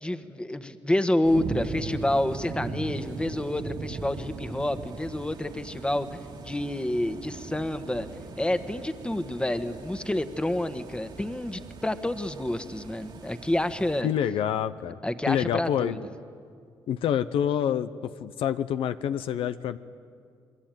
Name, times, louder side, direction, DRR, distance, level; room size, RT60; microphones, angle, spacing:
voice 1, 0.0-8.1 8.4-14.1 15.0-16.0, left 1 dB, 10° left, 10 dB, 1.4 m, -28 dB
sound 1, 1.2-14.0, right 4 dB, 55° right, 2.2 m, -39 dB
voice 2, 14.0-14.9 15.3-16.0 16.9-19.8, left 9 dB, 85° left, 12 dB, 0.8 m, -27 dB
28.0 x 21.5 x 9.2 m, 2.2 s
cardioid pair, 90°, 9 cm